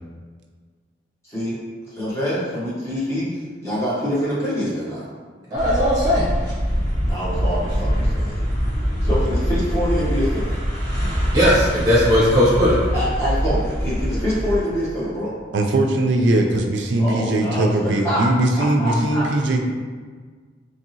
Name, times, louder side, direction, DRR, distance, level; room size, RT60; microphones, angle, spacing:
voice 1, 1.2-1.6 1.9-3.3 3.6-5.1 7.0-8.4 9.0-10.6 12.9-15.3 17.0-18.2 18.5-19.2, equal, 15° left, -9 dB, 0.9 m, -25 dB
voice 2, 5.5-6.3 11.3-12.8, equal, 20° right, -8 dB, 0.7 m, -17 dB
sound 1, 5.6-14.6, equal, 45° left, 1.4 m, -23 dB
voice 3, 15.5-19.6, right 1 dB, 70° right, 2 dB, 0.3 m, -20 dB
2.9 x 2.7 x 2.7 m, 1.5 s
head